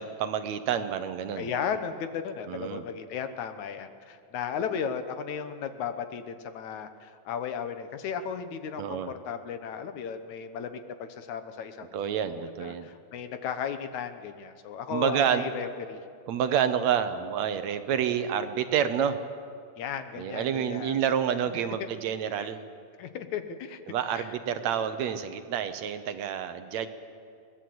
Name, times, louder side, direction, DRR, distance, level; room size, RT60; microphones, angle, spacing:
voice 1, 0.0-1.5 2.5-2.8 8.8-9.1 11.9-12.9 14.9-15.5 16.3-19.2 20.2-22.6 23.9-26.9, right 8 dB, 70° right, 10 dB, 2.0 m, -28 dB
voice 2, 1.4-16.0 19.8-21.0 21.6-21.8 22.4-22.5 23.0-23.8 24.1-24.3, left 7 dB, 75° left, 9 dB, 2.4 m, -35 dB
23.0 x 18.5 x 7.8 m, 2.3 s
omnidirectional pair, 3.5 m